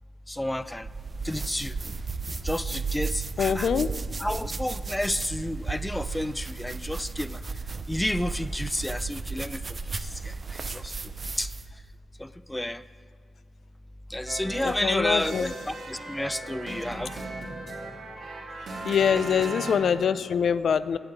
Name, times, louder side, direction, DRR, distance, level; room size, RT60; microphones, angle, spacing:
voice 1, 0.3-0.9 1.2-1.8 2.4-3.7 4.2-7.4 7.9-9.6 10.0-10.9 11.4-11.5 12.2-12.8 14.1-17.2 18.9-19.2, left 1 dB, 10° left, 14 dB, 0.3 m, -31 dB
sound 1, 0.8-11.7, right 4 dB, 35° right, 0.6 m, -34 dB
voice 2, 3.4-3.9 14.6-15.5 18.8-21.0, left 7 dB, 70° left, 14 dB, 0.4 m, -24 dB
sound 2, 14.3-19.8, right 2 dB, 70° right, 3.0 m, -37 dB
11.0 x 7.0 x 9.1 m, 2.2 s
wide cardioid pair, 115°, 0 cm